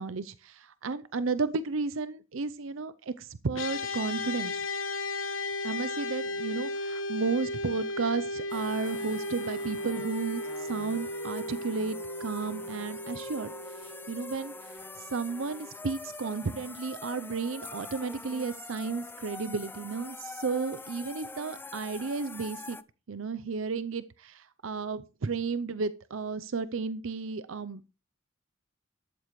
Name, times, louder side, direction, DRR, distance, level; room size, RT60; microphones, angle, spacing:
voice 1, 0.0-4.6 5.6-14.7 15.1-22.8 23.1-27.9, right 4 dB, 70° right, 15 dB, 0.6 m, -33 dB
sound 1, 3.5-15.0, left 2 dB, 70° left, 1.8 m, -35 dB
sound 2, 8.5-22.8, left 3 dB, 10° left, 0.5 m, -44 dB
13.5 x 11.5 x 3.2 m, 0.33 s
head